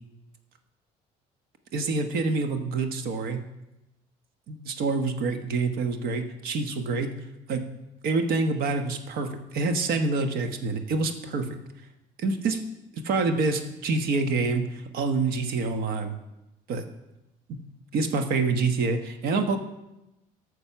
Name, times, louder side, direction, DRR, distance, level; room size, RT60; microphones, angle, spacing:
voice 1, 1.7-3.4 4.5-7.1 7.5-7.6 8.0-11.5 12.2-12.6 12.9-14.6 14.9-16.1 16.7-16.8 17.9-19.6, right 3 dB, 65° right, 7 dB, 1.3 m, -26 dB
12.0 x 6.7 x 5.7 m, 0.95 s
supercardioid pair, 95°, 17 cm